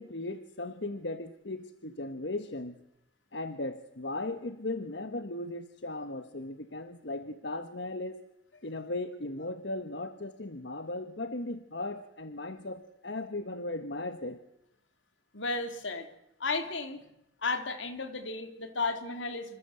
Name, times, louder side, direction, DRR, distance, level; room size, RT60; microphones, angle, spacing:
voice 1, 0.0-2.8 3.3-8.2 8.6-14.4, left 2 dB, 65° left, 9 dB, 1.3 m, -37 dB
voice 2, 15.3-16.1 16.4-17.0 17.4-19.6, left 3 dB, 80° left, 8 dB, 3.2 m, -33 dB
27.0 x 25.5 x 7.9 m, 0.84 s
head